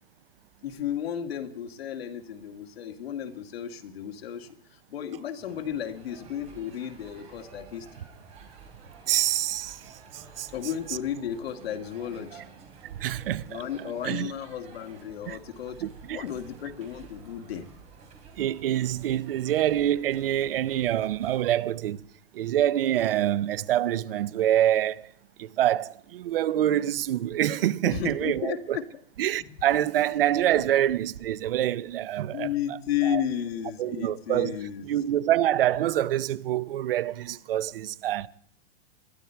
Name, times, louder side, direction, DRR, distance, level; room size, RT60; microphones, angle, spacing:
voice 1, 0.6-8.0 10.5-12.4 13.5-17.7 27.8-28.8 30.5-30.6 31.6-31.7 32.3-34.9, left 10 dB, 75° left, 2.1 m, -33 dB
sound 1, 5.4-21.4, right 5 dB, 20° right, 3.4 m, -50 dB
voice 2, 9.1-9.8 10.1-10.5 13.0-13.6 14.0-14.3 15.3-15.4 15.8-16.2 18.4-22.0 22.3-25.1 25.4-28.8 29.2-32.5 33.1-33.2 33.8-34.6 34.8-38.3, right 12 dB, 65° right, 0.8 m, -26 dB
21.5 x 13.0 x 4.6 m
supercardioid pair, 175°, 31 cm